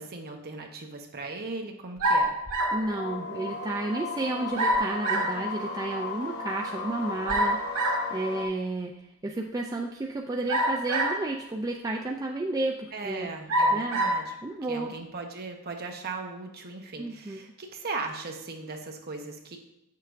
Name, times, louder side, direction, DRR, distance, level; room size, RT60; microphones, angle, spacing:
voice 1, 0.0-2.4 12.9-14.3 14.7-19.6, right 3 dB, 45° right, 2 dB, 0.9 m, -38 dB
sound 1, 2.0-2.9 4.6-5.4 7.3-8.1 10.5-11.3 12.1-12.2 13.5-14.2, right 1 dB, 75° right, 1.7 m, -25 dB
sound 2, 2.6-8.5, left 3 dB, 75° left, 1.5 m, -36 dB
voice 2, 2.7-8.9 9.2-13.3 13.7-14.0 14.4-14.9 17.0-17.4, right 2 dB, 15° right, 0 dB, 0.4 m, -32 dB
8.0 x 6.6 x 2.5 m, 0.90 s
head